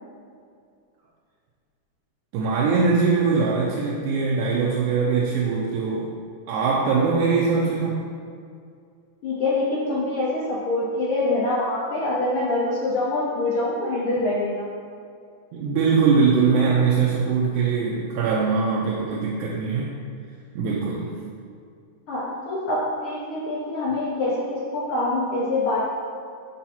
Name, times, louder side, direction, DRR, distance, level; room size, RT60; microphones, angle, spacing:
voice 1, 2.3-6.1 6.5-8.0 15.5-19.9 20.6-21.1, right 5 dB, 85° right, -4 dB, 2.2 m, -22 dB
voice 2, 9.2-14.7 22.1-25.9, left 2 dB, 70° left, -5 dB, 1.3 m, -25 dB
6.6 x 5.7 x 4.3 m, 2.3 s
omnidirectional pair, 3.5 m